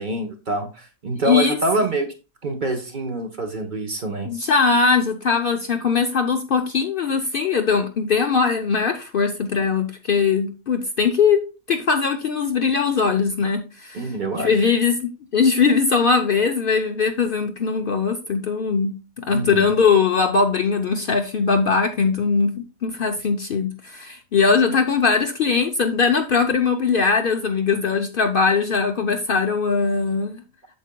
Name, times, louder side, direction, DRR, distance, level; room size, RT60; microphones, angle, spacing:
voice 1, 0.0-2.1 2.4-4.3 13.9-14.6 19.3-19.8, right 2 dB, 40° right, 4 dB, 1.1 m, -26 dB
voice 2, 1.2-1.6 4.2-11.4 11.7-14.0 14.4-30.4, left 5 dB, 55° left, 5 dB, 0.7 m, -20 dB
8.5 x 7.1 x 2.2 m, 0.32 s
omnidirectional pair, 1.4 m